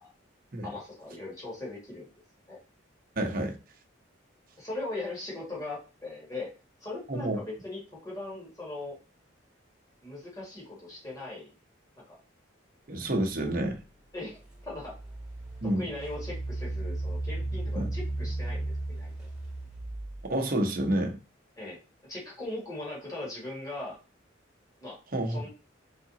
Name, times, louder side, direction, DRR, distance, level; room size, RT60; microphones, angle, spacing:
voice 1, 0.6-2.1 2.5-2.6 4.6-6.5 6.8-9.0 10.0-11.5 12.1-12.2 14.1-15.0 15.6-19.3 21.6-21.8 22.1-24.0 24.8-25.0 25.3-25.5, left 2 dB, 20° left, 1.7 m, -39 dB
voice 2, 3.2-3.6 7.1-7.4 12.9-13.8 15.6-15.9 17.7-17.9 20.3-21.2 25.1-25.5, right 1 dB, 45° right, 0.8 m, -29 dB
Engine, 14.5-20.4, right 2 dB, 5° right, 1.2 m, -35 dB
4.8 x 3.6 x 2.8 m
head